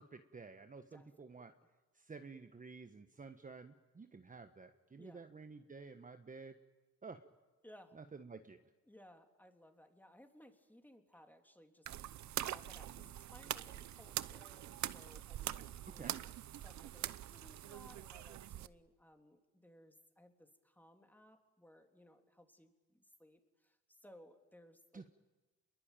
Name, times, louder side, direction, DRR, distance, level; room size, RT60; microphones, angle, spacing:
voice 1, 0.0-1.5 1.9-6.6 7.0-7.2 7.9-8.6 15.8-16.2 24.9-25.1, right 4 dB, 25° right, 7 dB, 1.4 m, -52 dB
voice 2, 0.9-1.3 5.0-5.3 7.6-8.0 8.8-16.2 16.6-25.0, equal, 5° left, 5 dB, 3.4 m, -62 dB
sound 1, 11.9-18.7, right 12 dB, 65° right, 0.9 m, -44 dB
27.5 x 22.0 x 9.1 m, 1.2 s
cardioid pair, 90°, 30 cm